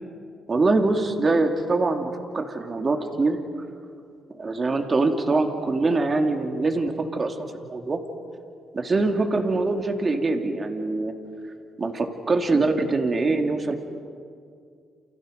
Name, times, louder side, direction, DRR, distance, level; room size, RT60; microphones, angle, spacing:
voice 1, 0.5-3.4 4.4-8.0 8.7-11.1 11.8-13.8, right 3 dB, 35° right, 5 dB, 2.5 m, -23 dB
30.0 x 28.5 x 5.2 m, 2.3 s
cardioid pair, 90°, 0 cm